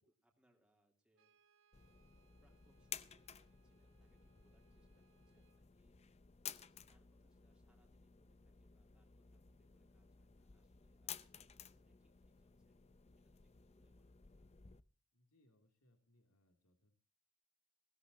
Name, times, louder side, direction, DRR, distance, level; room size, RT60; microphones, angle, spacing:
voice 1, 0.0-1.3 2.4-5.9 6.4-12.8 13.2-14.2, right 1 dB, 5° right, 0 dB, 3.0 m, -80 dB
Brass instrument, 1.1-5.7, right 7 dB, 60° right, 1.2 m, -77 dB
sound 1, 1.7-14.8, left 9 dB, 30° left, 0.6 m, -55 dB
voice 2, 15.1-17.0, left 1 dB, 80° left, 5 dB, 2.6 m, -74 dB
20.0 x 16.5 x 2.7 m, 0.36 s
head